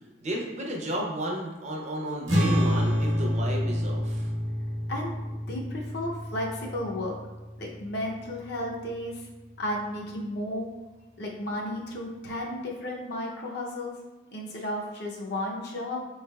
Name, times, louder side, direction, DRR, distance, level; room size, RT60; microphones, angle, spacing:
voice 1, 0.2-4.3, right 1 dB, 35° right, 0 dB, 0.5 m, -33 dB
sound 1, 2.3-8.9, equal, 75° right, 0.9 m, -28 dB
voice 2, 5.5-7.2 7.6-9.3 9.6-10.7 11.2-13.9 14.3-16.1, left 1 dB, 55° left, -2 dB, 0.6 m, -33 dB
4.5 x 3.2 x 2.2 m, 1.1 s
head